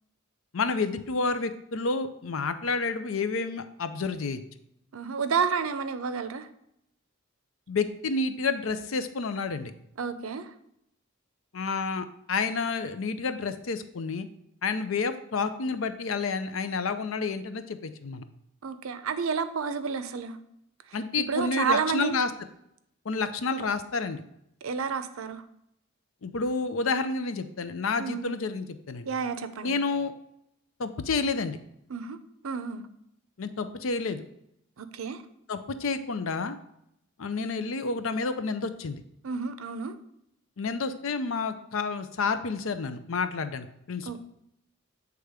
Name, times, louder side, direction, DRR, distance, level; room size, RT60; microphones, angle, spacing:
voice 1, 0.5-4.4 7.7-9.7 11.5-14.3 14.6-18.2 20.9-22.3 23.0-24.2 26.2-29.1 29.6-30.1 30.8-31.6 33.4-34.2 35.5-36.6 37.2-39.0 40.6-44.2, left 4 dB, 75° left, 10 dB, 0.6 m, -30 dB
voice 2, 4.9-6.5 10.0-10.5 18.6-20.4 21.3-22.2 24.6-25.4 28.0-28.4 29.1-29.7 31.9-32.2 32.4-32.8 34.8-35.2 39.2-39.9 44.1-44.2, right 6 dB, 90° right, 11 dB, 0.6 m, -30 dB
7.9 x 3.5 x 4.9 m, 0.77 s
head